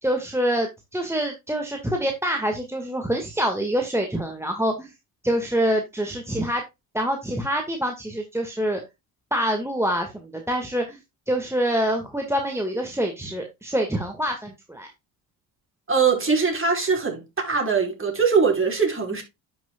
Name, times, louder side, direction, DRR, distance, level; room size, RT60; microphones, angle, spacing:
voice 1, 0.0-4.9 5.2-6.6 6.9-8.8 9.3-11.0 11.3-14.9, equal, 5° right, 2.0 m, -26 dB
voice 2, 15.9-19.2, right 5 dB, 25° right, 5.4 m, -22 dB
11.5 x 6.3 x 2.4 m
hypercardioid pair, 60°, 48 cm